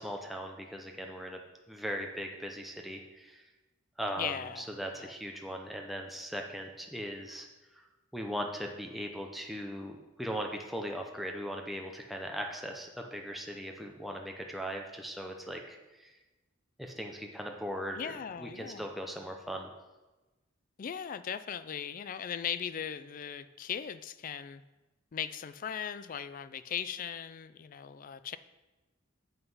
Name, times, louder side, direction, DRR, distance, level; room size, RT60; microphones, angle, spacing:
voice 1, 0.0-1.4 1.7-3.4 4.0-7.5 7.7-7.9 8.1-16.2 16.8-19.7, equal, ahead, 1 dB, 0.6 m, -39 dB
voice 2, 4.2-5.1 17.9-18.8 20.8-24.6 25.1-28.4, left 8 dB, 40° left, 13 dB, 0.3 m, -38 dB
8.0 x 5.5 x 5.5 m, 1.1 s
head